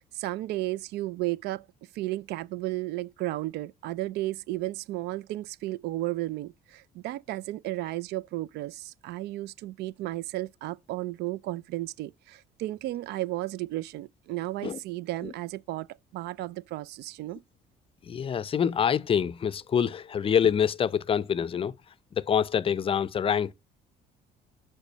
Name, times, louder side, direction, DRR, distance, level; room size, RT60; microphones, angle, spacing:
voice 1, 0.1-1.7 1.9-15.9 16.1-17.4, right 17 dB, 80° right, 0.4 m, -33 dB
voice 2, 18.0-21.7 22.1-23.5, left 8 dB, 35° left, 0.5 m, -26 dB
8.2 x 3.5 x 5.1 m
cardioid pair, 110°, 17 cm